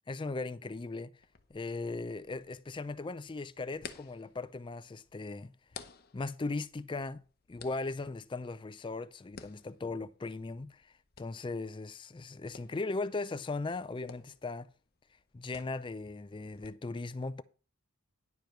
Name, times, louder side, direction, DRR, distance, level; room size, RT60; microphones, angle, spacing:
voice 1, 0.1-1.1 1.5-5.5 6.1-7.2 7.5-14.7 15.3-17.4, left 3 dB, 20° left, 0.4 m, -38 dB
sound 1, 1.2-16.7, left 5 dB, 45° left, 0.8 m, -55 dB
10.5 x 5.1 x 5.8 m
head